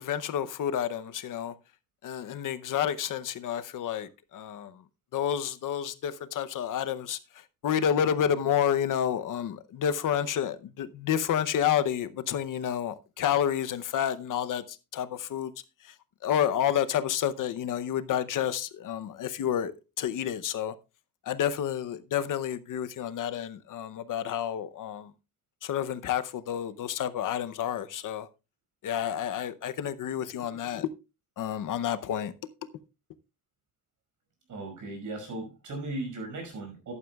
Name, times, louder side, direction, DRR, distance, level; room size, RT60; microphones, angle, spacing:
voice 1, 0.0-1.5 2.0-4.7 5.1-7.2 7.6-15.5 16.2-20.7 21.3-25.1 25.6-28.3 28.8-30.9 31.4-32.3, left 9 dB, 70° left, 0.8 m, -29 dB
voice 2, 34.5-36.9, right 2 dB, 65° right, 5.5 m, -37 dB
14.0 x 11.0 x 2.3 m
wide cardioid pair, 170°, 33 cm